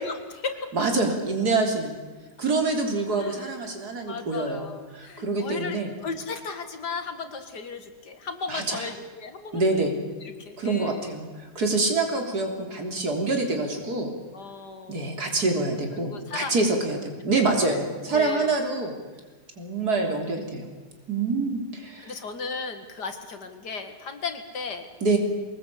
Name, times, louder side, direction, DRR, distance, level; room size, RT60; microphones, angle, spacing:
voice 1, 0.0-0.6 3.1-3.4 4.1-9.9 10.2-11.0 14.3-15.1 16.0-16.5 17.7-17.8 18.1-18.6 22.0-24.9, left 4 dB, 85° left, 7 dB, 2.6 m, -36 dB
voice 2, 0.7-2.0 2.4-5.9 8.5-8.9 9.5-10.0 10.6-14.1 14.9-18.9 19.6-20.7 21.1-22.1 25.0-25.2, right 3 dB, 70° right, 3 dB, 4.0 m, -26 dB
23.5 x 19.0 x 8.5 m, 1.3 s
omnidirectional pair, 1.7 m